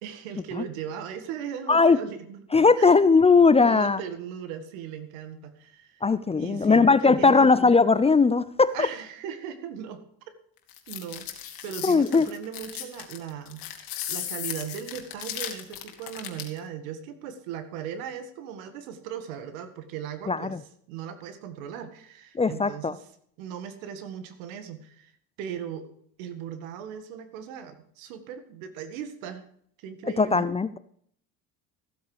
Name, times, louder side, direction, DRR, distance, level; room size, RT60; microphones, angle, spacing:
voice 1, 0.0-2.4 2.8-3.0 3.6-6.0 6.4-7.5 8.7-10.3 10.9-11.3 11.6-13.7 14.1-20.6 20.9-23.0 23.4-25.1 25.4-25.9 26.2-29.5 29.8-30.5, right 8 dB, 85° right, 10 dB, 1.9 m, -38 dB
voice 2, 1.7-2.0 2.5-4.0 6.0-8.9 11.8-12.3 20.3-20.6 22.3-22.9 30.0-30.8, left 4 dB, 15° left, 15 dB, 0.5 m, -19 dB
sound 1, 10.7-16.6, left 11 dB, 60° left, 2.3 m, -36 dB
15.0 x 8.0 x 4.9 m, 0.65 s
supercardioid pair, 95°, 39 cm